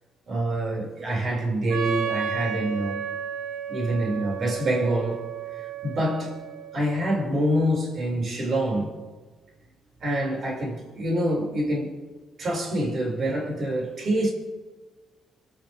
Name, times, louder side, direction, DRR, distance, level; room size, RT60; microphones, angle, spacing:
voice 1, 0.3-3.0 3.7-5.2 5.5-6.4 6.7-8.9 10.0-11.9 12.4-14.3, right 1 dB, 55° right, 6.0 m, -26 dB
Wind instrument woodwind instrument, 1.7-7.3, right 8 dB, 75° right, 1.9 m, -33 dB
28.5 x 12.0 x 3.6 m
cardioid pair, 90°, 0 cm